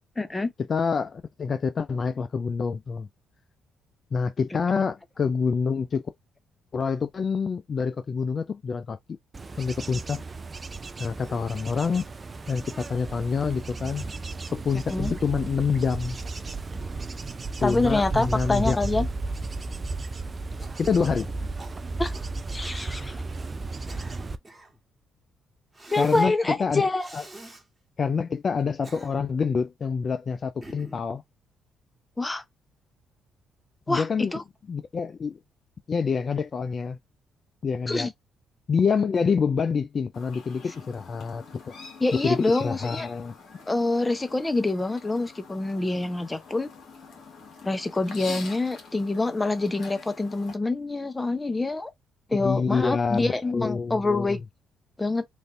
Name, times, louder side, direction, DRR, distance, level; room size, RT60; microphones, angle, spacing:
voice 1, 0.2-0.5 14.9-15.1 17.6-19.1 22.0-22.1 22.5-23.2 25.9-27.1 32.2-32.4 33.9-34.4 37.9-38.1 42.0-43.1 43.7-46.7 47.6-51.9 52.3-54.4 55.0-55.2, left 2 dB, 20° left, 0.7 m, -26 dB
voice 2, 0.7-3.1 4.1-6.0 6.7-9.2 9.6-10.2 11.0-12.1 12.5-14.1 14.5-16.2 17.6-19.1 20.8-21.3 26.0-26.9 27.1-27.2 28.0-31.2 33.9-34.3 34.7-35.4 35.9-37.0 37.6-38.1 38.7-41.4 42.2-43.3 52.4-54.4, left 5 dB, 45° left, 0.3 m, -27 dB
Bird / Insect / Wind, 9.3-24.4, right 3 dB, 35° right, 0.4 m, -34 dB
Cough, 20.6-21.0 21.6-22.3 22.6-22.9 23.6-24.8 25.7-26.3 27.0-27.6 28.6-29.4 30.6-31.1, right 2 dB, 20° right, 1.2 m, -46 dB
Chirp tweet, 40.1-50.5, left 4 dB, 60° left, 1.4 m, -45 dB
3.2 x 2.6 x 2.6 m
hypercardioid pair, 55°, 0 cm